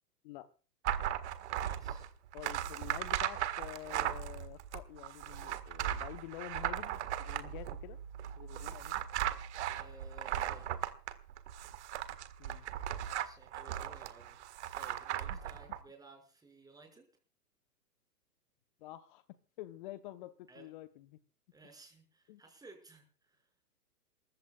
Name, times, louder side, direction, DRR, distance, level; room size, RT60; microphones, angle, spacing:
sound 1, 0.8-15.8, right 11 dB, 45° right, 1.8 m, -37 dB
voice 1, 1.5-2.1 9.7-10.7 12.9-14.5 14.7-17.0 20.5-20.7 21.5-23.5, right 3 dB, 10° right, 4 dB, 6.1 m, -57 dB
voice 2, 2.3-8.0 8.4-9.1 12.4-12.7 15.3-15.4 18.8-19.2 19.6-21.2 22.3-22.4, left 15 dB, 30° left, 11 dB, 1.0 m, -48 dB
28.0 x 15.0 x 2.4 m, 0.38 s
figure-of-eight pair, 120°, 47 cm